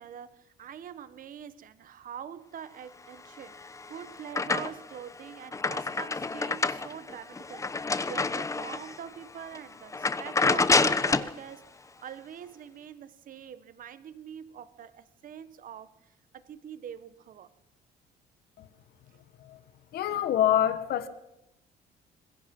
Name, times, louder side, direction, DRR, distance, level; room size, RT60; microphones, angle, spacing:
voice 1, 0.0-11.7 12.0-15.9 16.3-17.5 19.1-19.2, right 9 dB, 55° right, 1.5 m, -44 dB
sound 1, 3.4-5.0 5.3-9.0 9.4-9.6 9.9-11.4, left 3 dB, 20° left, 1.0 m, -28 dB
voice 2, 19.9-21.1, left 11 dB, 70° left, 1.6 m, -26 dB
26.5 x 21.0 x 5.5 m
cardioid pair, 110°, 17 cm